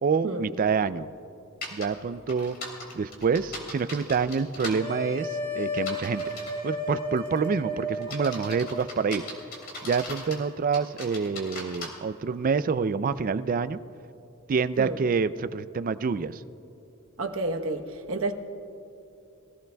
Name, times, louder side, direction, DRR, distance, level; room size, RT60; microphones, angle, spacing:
voice 1, 0.0-1.1 1.7-2.6 2.9-6.2 6.6-9.2 9.8-13.8 14.5-16.4, right 5 dB, 40° right, 0.3 m, -27 dB
sound 1, 1.6-1.9 2.3-4.8 5.8-6.6 7.2-7.5 8.0-10.4 10.7-11.9, left 2 dB, 45° left, 3.0 m, -38 dB
sound 2, 4.8-9.2, left 1 dB, 25° left, 1.8 m, -33 dB
voice 2, 17.2-18.3, right 2 dB, 65° right, 1.0 m, -30 dB
23.5 x 16.0 x 2.3 m
head